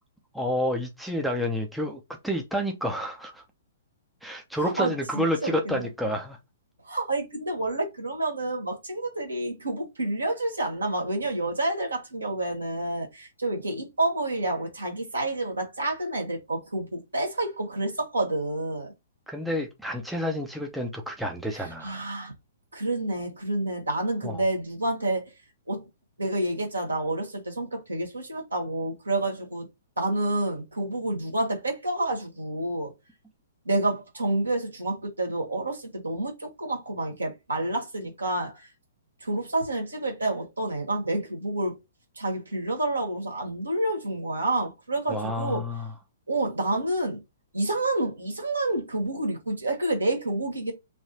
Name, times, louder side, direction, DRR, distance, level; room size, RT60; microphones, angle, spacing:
voice 1, 0.3-3.4 4.2-6.4 19.3-22.1 24.2-24.4 45.1-45.9, equal, ahead, 0.7 m, -29 dB
voice 2, 4.5-5.9 6.8-18.9 21.5-22.3 22.7-25.3 25.7-25.8 26.2-29.7 30.0-32.9 33.6-38.7 39.2-41.8 42.1-45.6 46.3-47.2 47.5-50.7, right 2 dB, 75° right, 1.7 m, -29 dB
3.3 x 2.7 x 4.1 m
figure-of-eight pair, 115°, 0 cm